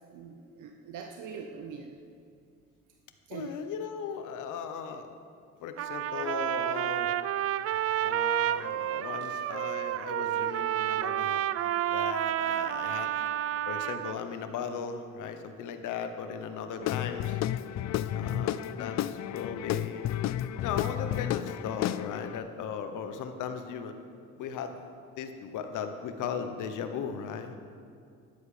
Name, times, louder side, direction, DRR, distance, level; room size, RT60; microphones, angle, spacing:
voice 1, 0.1-2.0 3.3-3.6 8.1-8.2 9.2-9.3 18.1-18.6, right 6 dB, 80° right, 4 dB, 0.8 m, -43 dB
voice 2, 3.3-5.1 5.6-7.1 8.0-11.4 11.9-13.1 13.7-17.4 18.1-20.0 20.6-23.9 24.3-24.8 25.2-27.6, left 7 dB, 85° left, 7 dB, 1.1 m, -37 dB
Trumpet, 5.8-14.2, right 11 dB, 50° right, 0.4 m, -30 dB
Guitar / Drum, 16.8-22.4, left 12 dB, 60° left, 0.4 m, -32 dB
12.5 x 10.5 x 5.0 m, 2.3 s
cardioid pair, 90°, 30 cm